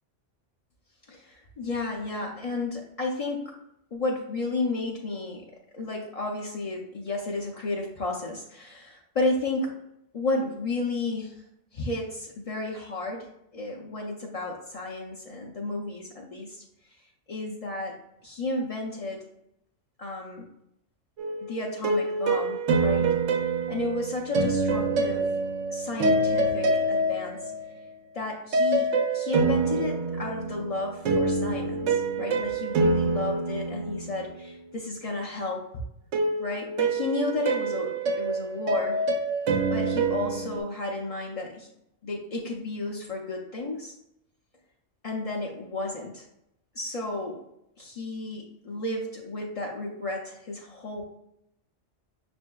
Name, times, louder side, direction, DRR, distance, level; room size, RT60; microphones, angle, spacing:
voice 1, 1.1-3.6 3.9-5.5 5.7-9.7 10.1-11.4 11.7-13.3 13.5-16.6 17.3-19.2 20.0-20.5 21.4-23.2 23.7-25.3 25.7-27.5 28.1-35.8 36.4-39.0 39.7-41.7 42.0-43.9 45.0-46.3 46.7-47.4 47.8-51.0, left 2 dB, 65° left, -2 dB, 0.3 m, -32 dB
sound 1, 21.2-27.8 28.5-34.5 36.1-40.6, right 3 dB, 90° right, 1.0 m, -26 dB
6.3 x 2.6 x 2.2 m, 0.80 s
omnidirectional pair, 1.2 m